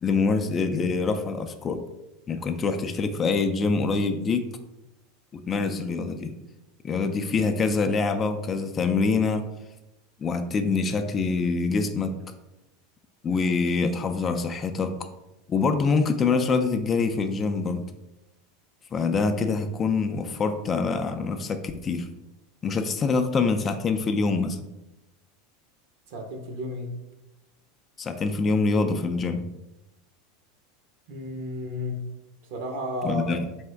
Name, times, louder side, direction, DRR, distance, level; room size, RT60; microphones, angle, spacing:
voice 1, 0.0-1.8 2.3-4.5 5.3-6.3 6.8-9.5 10.2-12.2 13.2-15.0 15.5-17.8 18.9-22.1 22.6-24.6 28.0-29.5 33.0-33.4, left 4 dB, 30° left, 7 dB, 0.4 m, -25 dB
voice 2, 26.1-26.9 31.1-32.0 32.5-33.4, left 1 dB, 65° right, 3 dB, 0.9 m, -32 dB
3.7 x 3.5 x 3.3 m, 0.94 s
hypercardioid pair, 105°, 0 cm